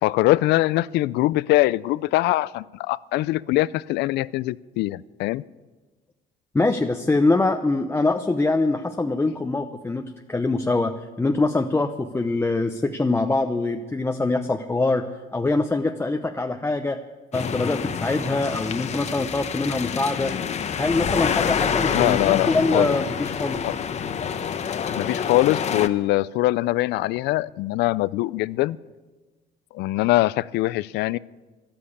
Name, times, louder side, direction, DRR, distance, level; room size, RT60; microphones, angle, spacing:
voice 1, 0.0-5.4 21.9-23.0 23.6-23.7 25.0-28.8 29.7-31.2, left 17 dB, 80° left, 20 dB, 0.4 m, -22 dB
voice 2, 6.5-15.0 15.3-17.0 17.3-20.3 20.8-23.7, left 2 dB, 15° left, 5 dB, 0.7 m, -24 dB
sound 1, 17.3-25.9, left 7 dB, 40° left, 0.9 m, -27 dB
13.0 x 12.0 x 8.5 m, 1.3 s
cardioid pair, 110°, 17 cm